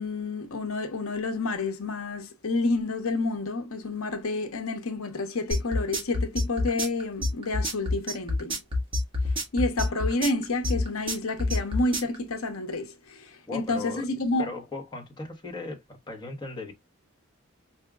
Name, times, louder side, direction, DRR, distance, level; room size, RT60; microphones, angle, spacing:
voice 1, 0.0-8.6 9.5-14.5, left 2 dB, 80° left, 0.8 m, -29 dB
sound 1, 5.5-12.2, left 2 dB, 25° right, 1.5 m, -27 dB
voice 2, 13.5-16.7, left 3 dB, 20° left, 1.1 m, -38 dB
4.8 x 2.8 x 2.3 m
head